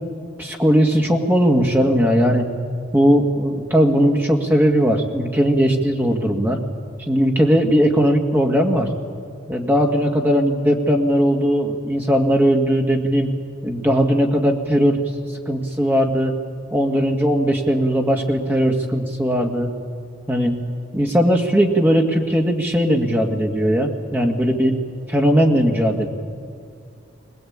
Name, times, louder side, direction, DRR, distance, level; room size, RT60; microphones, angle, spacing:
voice 1, 0.4-2.5 2.9-6.6 7.0-8.9 9.5-13.3 13.6-15.0 15.5-16.3 16.7-19.7 20.3-20.5 20.9-24.7 25.1-26.1, equal, 10° right, 1 dB, 1.9 m, -18 dB
22.0 x 19.5 x 8.8 m, 2.3 s
head